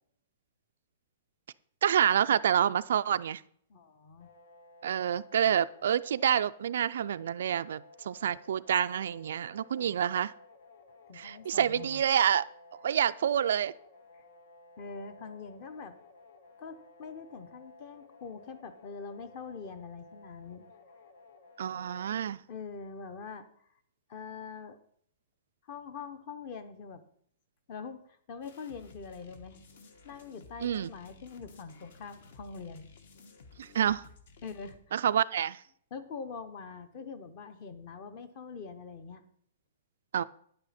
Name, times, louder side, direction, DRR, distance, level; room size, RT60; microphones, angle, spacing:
voice 1, 1.8-3.4 4.8-10.3 11.1-12.4 12.8-13.7 21.6-22.4 30.6-30.9 33.6-34.0 34.9-35.6 40.1-40.2, right 9 dB, 55° right, 14 dB, 0.3 m, -28 dB
voice 2, 3.7-4.3 9.8-9.9 11.1-12.0 14.1-14.2 14.8-15.9 16.6-20.7 22.5-23.5 24.1-24.8 25.7-27.0 27.7-29.6 30.0-32.9 34.4-34.8 35.9-39.2, left 5 dB, 25° left, 12 dB, 0.8 m, -44 dB
sound 1, 4.2-22.2, left 2 dB, 75° left, 1.8 m, -56 dB
sound 2, 28.4-34.8, left 4 dB, 50° left, 1.2 m, -55 dB
9.8 x 8.9 x 4.2 m, 0.64 s
hypercardioid pair, 180°, 0 cm